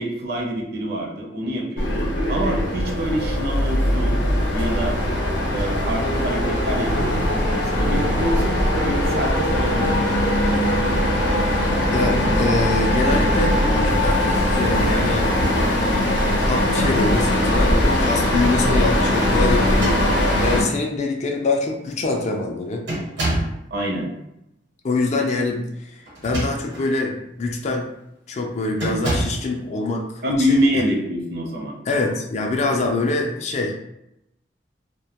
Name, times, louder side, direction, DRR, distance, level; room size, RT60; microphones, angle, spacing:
voice 1, 0.0-4.2 4.5-5.0 5.5-10.6 23.7-24.1 30.2-31.8, equal, 60° right, 0 dB, 0.5 m, -26 dB
sound 1, 1.8-20.6, left 1 dB, 85° left, 0.6 m, -20 dB
voice 2, 11.9-15.3 16.5-20.0 20.4-22.9 24.8-27.9 28.3-30.8 31.9-33.8, left 3 dB, 40° left, 2 dB, 0.3 m, -24 dB
sound 2, 19.6-20.5 21.4-21.5 21.8-22.2 22.9-23.6 26.0-26.9 27.5-27.7 28.8-29.5, right 1 dB, 90° right, 0.9 m, -27 dB
2.1 x 2.1 x 2.8 m, 0.84 s
head